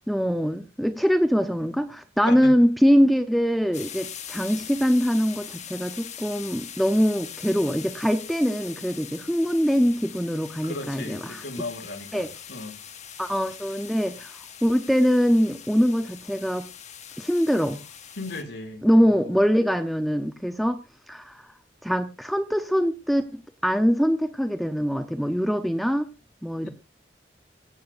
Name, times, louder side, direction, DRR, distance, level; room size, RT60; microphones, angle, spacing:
voice 1, 0.1-11.4 12.1-12.3 13.2-14.3 14.6-16.7 17.2-17.8 18.8-20.8 21.1-21.4 21.8-26.0 26.4-26.7, equal, ahead, 8 dB, 0.8 m, -23 dB
voice 2, 2.2-2.6 10.6-12.8 18.2-19.4 26.6-26.7, left 2 dB, 65° left, 5 dB, 2.6 m, -36 dB
sound 1, 3.7-18.4, left 9 dB, 40° left, 1.2 m, -42 dB
23.5 x 8.6 x 2.6 m, 0.29 s
head